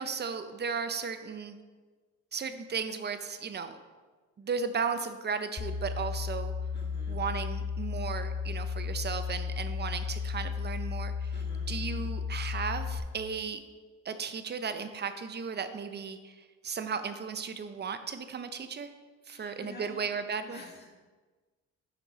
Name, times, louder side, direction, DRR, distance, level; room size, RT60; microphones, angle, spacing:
voice 1, 0.0-1.6 2.3-3.8 4.4-6.5 7.1-11.4 11.7-13.6 14.0-16.4 16.6-18.9 19.3-20.6, right 5 dB, 35° right, 9 dB, 0.6 m, -35 dB
sound 1, 5.6-13.0, left 6 dB, 20° left, 0.5 m, -34 dB
voice 2, 6.7-7.2 11.3-12.1 19.3-20.2 20.5-20.9, left 2 dB, 35° left, -1 dB, 1.8 m, -50 dB
7.0 x 4.4 x 5.0 m, 1.3 s
cardioid pair, 90°, 30 cm